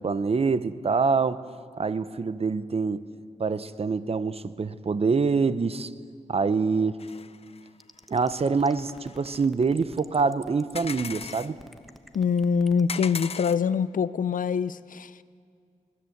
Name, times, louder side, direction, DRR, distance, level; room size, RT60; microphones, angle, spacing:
voice 1, 0.0-1.4 1.8-3.0 3.4-5.9 6.3-7.0 8.1-11.6, right 4 dB, 45° right, 0.9 m, -25 dB
sound 1, 7.0-7.7 8.2-8.4 8.7-9.5 10.8-11.5 12.9-13.6, left 6 dB, 45° left, 0.7 m, -38 dB
sound 2, 7.8-12.9, equal, ahead, 1.2 m, -48 dB
voice 2, 12.1-15.2, left 6 dB, 85° left, 0.6 m, -24 dB
24.0 x 18.5 x 8.0 m
wide cardioid pair, 95°, 14 cm